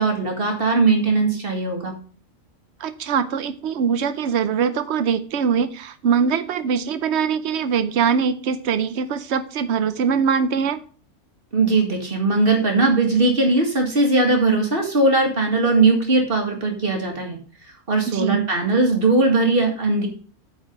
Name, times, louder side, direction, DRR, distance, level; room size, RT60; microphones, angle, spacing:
voice 1, 0.0-2.0 11.5-17.4 17.9-20.1, right 3 dB, 45° right, 2 dB, 2.2 m, -19 dB
voice 2, 2.8-10.8 18.1-18.5, right 6 dB, 60° right, 12 dB, 1.0 m, -22 dB
9.1 x 4.7 x 5.3 m, 0.41 s
omnidirectional pair, 1.3 m